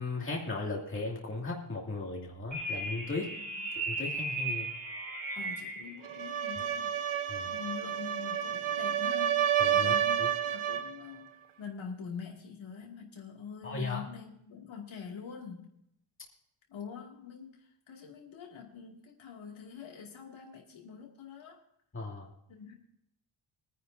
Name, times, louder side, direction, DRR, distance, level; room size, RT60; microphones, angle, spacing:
voice 1, 0.0-3.3 3.7-4.7 7.3-7.5 9.6-10.3 13.6-14.0 21.9-22.3, left 3 dB, 25° left, -2 dB, 2.4 m, -36 dB
sound 1, 2.5-6.0, right 2 dB, 40° right, 3.8 m, -36 dB
voice 2, 5.3-7.0 7.5-15.7 16.7-17.6 17.9-21.6 22.5-22.7, left 7 dB, 65° left, -1 dB, 2.5 m, -45 dB
sound 2, 6.0-11.0, right 10 dB, 75° right, 0.9 m, -30 dB
22.5 x 9.9 x 2.7 m, 0.75 s
wide cardioid pair, 175°, 49 cm